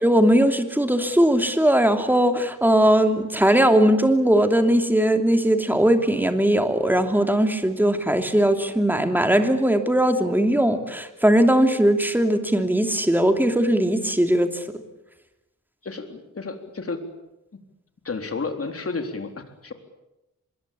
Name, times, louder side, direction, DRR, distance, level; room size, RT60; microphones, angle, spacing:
voice 1, 0.0-14.5, right 1 dB, 5° right, 6 dB, 2.9 m, -19 dB
voice 2, 15.8-17.0 18.0-19.7, left 4 dB, 45° left, 6 dB, 3.9 m, -31 dB
25.5 x 22.0 x 8.6 m, 0.93 s
wide cardioid pair, 105°, 31 cm